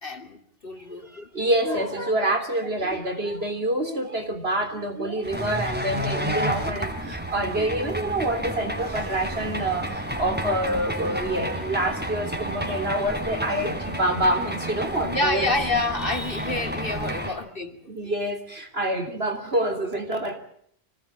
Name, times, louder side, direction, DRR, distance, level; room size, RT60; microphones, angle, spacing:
voice 1, 0.0-1.3 12.6-12.7 15.0-17.8 18.0-18.1, left 2 dB, 55° left, 6 dB, 3.0 m, -28 dB
voice 2, 0.9-15.5 17.2-17.3 17.9-20.4, right 1 dB, 70° right, 6 dB, 3.8 m, -27 dB
sound 1, 5.2-17.3, equal, 10° right, 3.9 m, -31 dB
26.0 x 19.0 x 8.8 m, 0.67 s
omnidirectional pair, 1.1 m